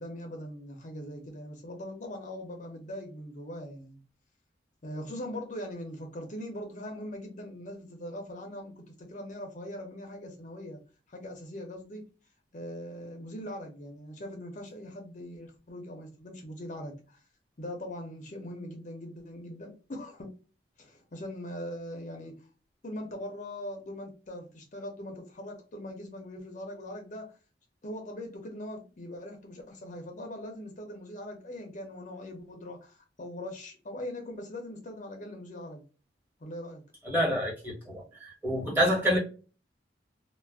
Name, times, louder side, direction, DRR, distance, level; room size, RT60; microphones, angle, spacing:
voice 1, 0.0-4.0 4.8-10.8 11.1-12.0 12.5-17.2 17.6-20.3 20.8-22.3 22.8-27.4 27.8-35.8 36.4-36.8, left 1 dB, 45° left, 0.6 m, -41 dB
voice 2, 37.0-39.2, equal, 10° right, 1.1 m, -27 dB
2.3 x 2.1 x 3.3 m
head